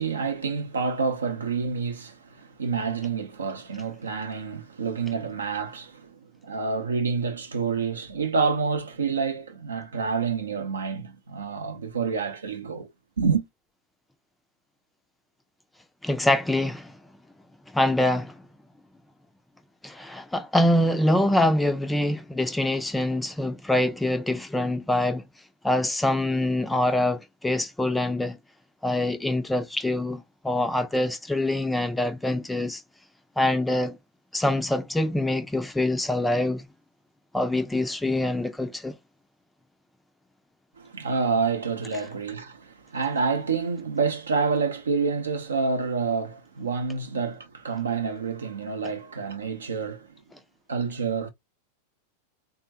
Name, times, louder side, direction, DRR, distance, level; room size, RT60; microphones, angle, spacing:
voice 1, 0.0-12.9 13.2-13.4 40.8-50.1 50.7-51.3, right 5 dB, 70° right, 0.6 m, -28 dB
voice 2, 16.0-16.9 17.7-18.3 19.8-25.2 25.6-28.4 28.8-32.8 33.4-34.0 34.3-36.6 37.3-39.0, left 1 dB, 5° left, 0.4 m, -25 dB
3.6 x 2.1 x 2.7 m
figure-of-eight pair, 90°, 0 cm